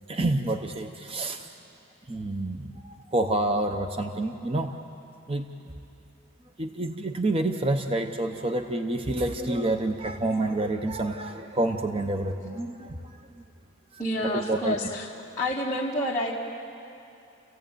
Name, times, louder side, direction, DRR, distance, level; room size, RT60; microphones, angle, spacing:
voice 1, 0.1-1.5 2.1-4.8 5.3-5.5 6.6-13.2 14.2-14.8, right 2 dB, 25° right, 5 dB, 0.8 m, -28 dB
voice 2, 14.0-15.1 15.4-16.3, left 1 dB, 15° left, -7 dB, 1.7 m, -28 dB
29.5 x 15.5 x 9.0 m, 2.8 s
head